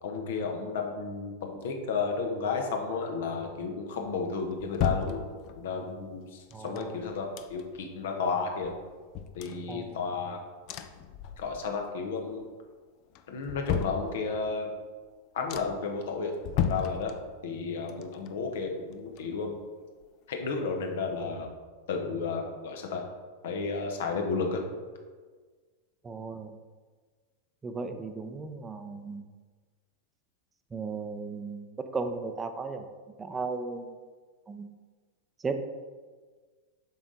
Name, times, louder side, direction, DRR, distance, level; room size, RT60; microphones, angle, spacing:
voice 1, 0.0-5.2 5.5-8.7 9.3-10.4 11.4-12.5 13.3-14.7 15.3-17.1 17.4-19.5 20.3-21.5 21.9-23.0 23.4-24.6, left 4 dB, 60° left, 3 dB, 1.2 m, -32 dB
sound 1, 4.0-5.8 6.5-7.9 8.3-8.4 8.6-10.3 10.7-11.9 12.2-12.7 13.1-14.6 15.0-15.1 15.5-16.0 16.4-17.6 17.9-19.7 20.0-20.1, left 8 dB, 40° left, 0.5 m, -35 dB
voice 2, 6.5-7.0 9.7-10.0 26.0-26.5 27.6-29.3 30.7-32.8 33.2-33.9 34.5-34.7 35.4-35.6, right 4 dB, 15° right, 7 dB, 0.7 m, -35 dB
7.8 x 6.1 x 3.9 m, 1.5 s
figure-of-eight pair, 90°, 0 cm